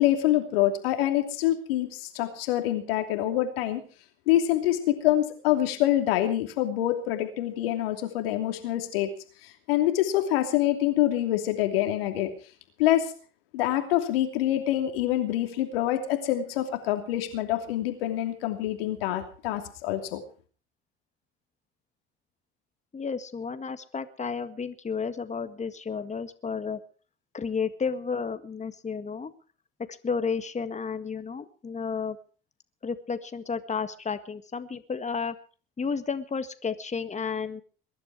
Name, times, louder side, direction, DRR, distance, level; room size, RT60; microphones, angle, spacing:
voice 1, 0.0-3.8 4.3-9.1 9.4-12.3 12.8-13.1 13.5-20.2, left 13 dB, 80° left, 6 dB, 3.0 m, -26 dB
voice 2, 22.9-26.8 27.3-29.3 30.0-32.2 32.8-35.4 35.8-37.6, left 5 dB, 25° left, 10 dB, 1.8 m, -32 dB
22.0 x 11.5 x 4.8 m, 0.40 s
hypercardioid pair, 70°, 29 cm